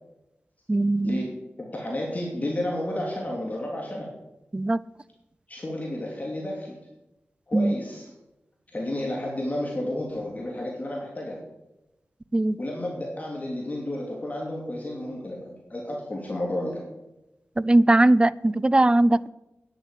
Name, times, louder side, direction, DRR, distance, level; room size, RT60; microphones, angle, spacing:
voice 1, 0.7-1.3 4.5-4.8 7.5-7.8 12.3-12.6 17.6-19.3, right 2 dB, 20° right, 19 dB, 0.4 m, -20 dB
voice 2, 1.6-4.1 5.5-6.7 7.5-8.1 8.7-11.4 12.6-16.9, left 1 dB, 35° left, -2 dB, 3.1 m, -31 dB
10.0 x 8.1 x 8.5 m, 0.94 s
wide cardioid pair, 70°, 5 cm